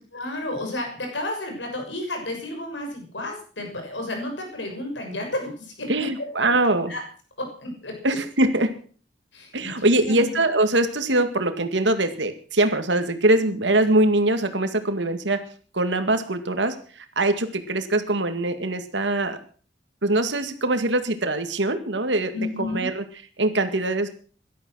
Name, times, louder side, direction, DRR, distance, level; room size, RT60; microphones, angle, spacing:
voice 1, 0.1-6.3 6.9-7.0 7.4-7.9 9.3-10.3 22.3-22.9, left 1 dB, 85° left, 3 dB, 6.6 m, -32 dB
voice 2, 5.9-6.9 8.0-8.7 9.5-15.4 15.7-19.4 20.0-22.3 22.6-23.0 23.4-24.1, right 2 dB, 85° right, 8 dB, 2.1 m, -22 dB
17.5 x 12.5 x 6.4 m, 0.43 s
head